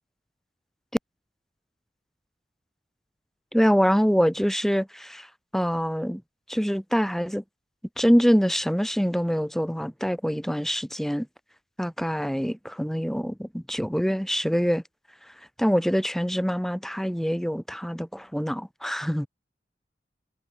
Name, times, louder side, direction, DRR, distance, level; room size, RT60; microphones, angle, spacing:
voice 1, 3.5-5.3 5.5-6.2 6.5-7.4 8.0-11.3 11.8-14.8 15.6-19.3, equal, ahead, 3.1 m, -25 dB
head